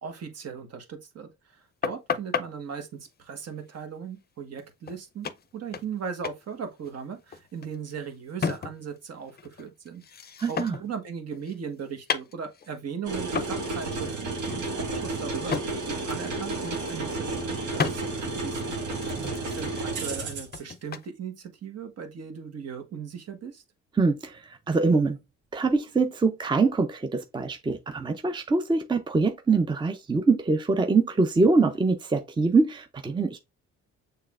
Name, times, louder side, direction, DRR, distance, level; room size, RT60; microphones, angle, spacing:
voice 1, 0.0-10.0 10.4-18.6 19.3-23.6, right 6 dB, 55° right, 1.3 m, -38 dB
sound 1, 1.8-2.5 4.6-4.7 4.9-5.0 5.2-6.0 6.2-6.4 6.7-9.0 9.3-11.0 11.3-12.8 13.4-13.6 14.0-14.2 14.5-15.7 16.1-16.3 16.6-17.2 17.8-18.0 18.5-21.1, left 6 dB, 35° left, 0.5 m, -33 dB
voice 2, 10.4-10.8 18.3-18.4 19.2-19.3 24.0-25.2 25.5-33.4, right 3 dB, 15° right, 0.6 m, -24 dB
sound 2, 13.0-20.6, right 3 dB, 75° right, 1.6 m, -32 dB
6.5 x 3.3 x 2.4 m
cardioid pair, 90°, 30 cm